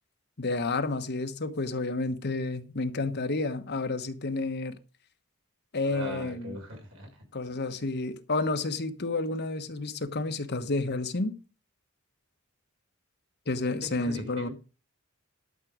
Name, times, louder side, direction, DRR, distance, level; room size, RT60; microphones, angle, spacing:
voice 1, 0.4-4.8 5.7-6.6 7.3-11.4 13.5-14.5, left 3 dB, 50° left, 1.2 m, -30 dB
voice 2, 5.8-7.2 13.6-13.7 14.0-14.5, equal, 70° right, 5.9 m, -41 dB
12.5 x 7.5 x 5.1 m
head